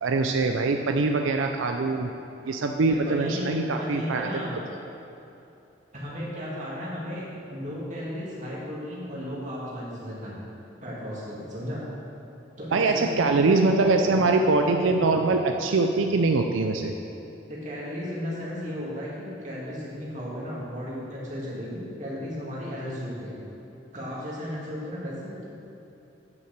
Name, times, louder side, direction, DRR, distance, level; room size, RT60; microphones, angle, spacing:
voice 1, 0.0-2.1 2.4-4.3 12.7-16.9, right 3 dB, 90° right, 4 dB, 0.5 m, -23 dB
voice 2, 2.9-3.5 3.8-4.6 5.9-7.2 7.5-10.4 10.8-11.8 12.6-14.3 17.5-23.4 23.9-25.5, equal, 40° right, -6 dB, 2.3 m, -35 dB
9.4 x 5.7 x 6.7 m, 2.9 s
head